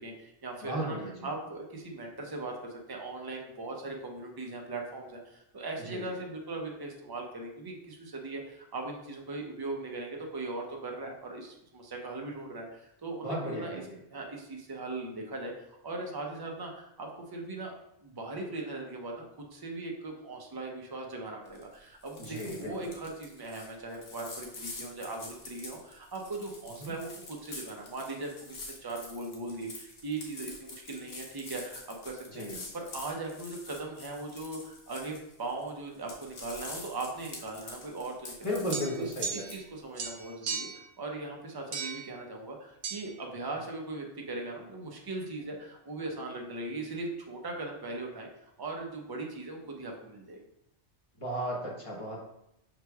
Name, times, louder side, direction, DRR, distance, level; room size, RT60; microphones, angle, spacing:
voice 1, 0.0-1.0 1.2-13.8 14.1-17.7 18.0-38.6 39.0-40.7 41.0-50.4, right 2 dB, 25° right, 0 dB, 0.6 m, -39 dB
voice 2, 0.6-1.3 5.9-6.2 13.2-14.0 22.2-22.9 26.8-26.9 32.3-32.6 38.4-39.4 51.2-52.2, equal, 30° left, -3 dB, 0.9 m, -35 dB
sound 1, 21.5-21.7 22.0-35.7 35.9-39.6, left 3 dB, 70° left, 1.2 m, -46 dB
sound 2, 38.7-39.7 40.0-40.9 41.7-42.1 42.8-43.0, right 5 dB, 70° right, 0.8 m, -36 dB
6.8 x 3.1 x 2.3 m, 0.82 s
omnidirectional pair, 1.2 m